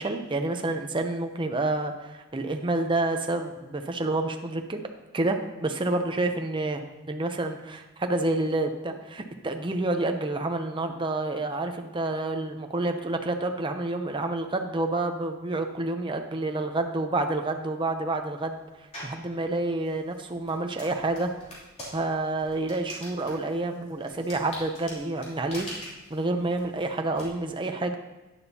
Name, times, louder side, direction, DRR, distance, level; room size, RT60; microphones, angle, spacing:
voice 1, 0.0-4.8 5.1-18.6 19.0-21.3 21.9-25.7 26.1-28.0, right 2 dB, 25° right, 5 dB, 0.6 m, -28 dB
sound 1, 18.9-19.3 19.8-27.2, equal, 30° left, 2.9 m, -43 dB
11.0 x 10.0 x 2.8 m, 1.1 s
head